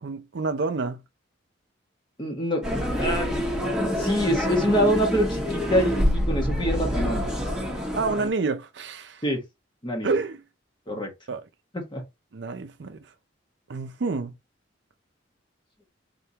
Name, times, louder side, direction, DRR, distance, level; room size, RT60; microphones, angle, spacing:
voice 1, 0.0-1.0 7.9-9.2 10.0-10.4 11.3-11.5 12.3-13.0 13.7-14.3, right 4 dB, 65° right, 0.5 m, -28 dB
voice 2, 2.2-3.4 4.0-7.3 9.2-9.4 9.8-10.1 10.9-11.1 11.9-12.0, equal, 25° left, 1.4 m, -25 dB
sound 1, 2.6-8.3, equal, 5° right, 1.4 m, -26 dB
3.8 x 3.5 x 2.8 m
head